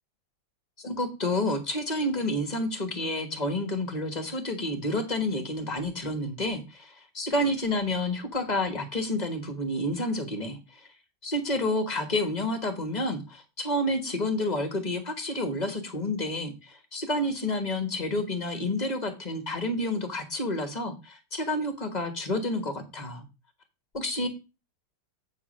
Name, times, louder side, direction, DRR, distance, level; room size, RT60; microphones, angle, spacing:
voice 1, 0.8-10.9 11.2-23.2 23.9-24.3, left 1 dB, 25° left, 6 dB, 1.3 m, -29 dB
8.7 x 3.8 x 6.3 m, 0.28 s
omnidirectional pair, 2.2 m